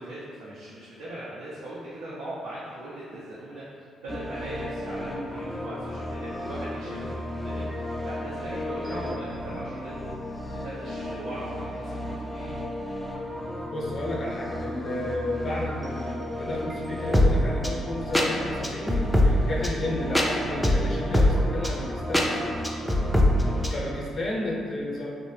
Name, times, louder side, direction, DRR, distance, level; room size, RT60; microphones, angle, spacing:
voice 1, 0.0-12.6, right 1 dB, 90° right, -10 dB, 0.6 m, -39 dB
sound 1, 4.1-23.8, left 1 dB, ahead, 0.3 m, -28 dB
voice 2, 8.8-9.2 13.6-22.7 23.7-25.1, left 1 dB, 50° left, -4 dB, 0.5 m, -32 dB
2.9 x 2.0 x 3.1 m, 2.3 s
cardioid pair, 90°, 0 cm